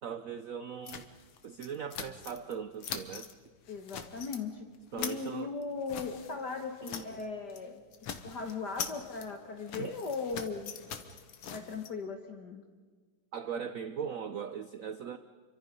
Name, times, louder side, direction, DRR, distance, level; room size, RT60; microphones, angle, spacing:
voice 1, 0.0-1.1 1.4-3.3 4.9-5.5 6.8-7.2 9.8-9.9 13.3-15.2, right 7 dB, 65° right, 10 dB, 0.8 m, -39 dB
sound 1, 0.9-2.5 2.8-3.3 3.7-4.4 4.7-7.2 7.5-7.7 7.9-11.9, left 8 dB, 85° left, 2.2 m, -43 dB
voice 2, 3.7-7.8 8.2-10.7 11.5-12.6, left 4 dB, 55° left, 5 dB, 1.8 m, -38 dB
29.5 x 24.5 x 5.4 m, 1.5 s
omnidirectional pair, 2.4 m